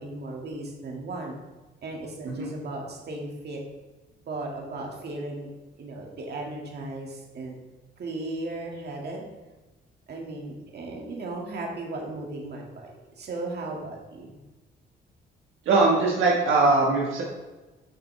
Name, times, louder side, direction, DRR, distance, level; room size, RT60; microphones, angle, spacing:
voice 1, 0.0-1.4 1.8-3.6 4.3-5.5 5.8-7.6 8.0-9.3 10.1-12.9 13.2-14.4, right 2 dB, 55° right, 0 dB, 2.0 m, -36 dB
voice 2, 15.6-17.2, right 3 dB, 80° right, -3 dB, 1.4 m, -21 dB
8.5 x 6.3 x 3.3 m, 1.1 s
cardioid pair, 90°, 20 cm